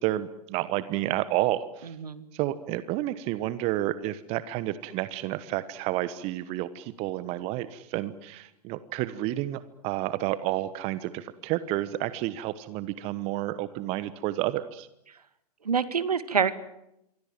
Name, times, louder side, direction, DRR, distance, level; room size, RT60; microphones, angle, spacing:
voice 1, 0.0-1.9 2.3-14.9, right 15 dB, 30° right, 15 dB, 1.2 m, -30 dB
voice 2, 15.6-16.6, right 6 dB, 70° right, 14 dB, 2.1 m, -26 dB
26.5 x 23.5 x 7.7 m, 0.84 s
figure-of-eight pair, 110°, 20 cm